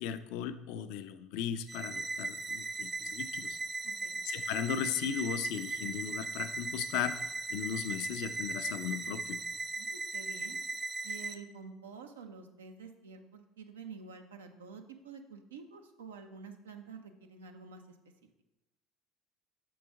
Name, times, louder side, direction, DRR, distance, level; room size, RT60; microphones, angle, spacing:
voice 1, 0.0-3.6 4.3-7.2 7.5-9.4, left 9 dB, 70° left, 11 dB, 0.4 m, -36 dB
sound 1, 1.7-11.4, right 3 dB, 30° right, 0.6 m, -38 dB
voice 2, 3.8-4.2 9.8-10.6 11.0-18.0, right 5 dB, 85° right, 5 dB, 0.5 m, -49 dB
6.2 x 3.9 x 4.6 m, 1.0 s
hypercardioid pair, 65°, 0 cm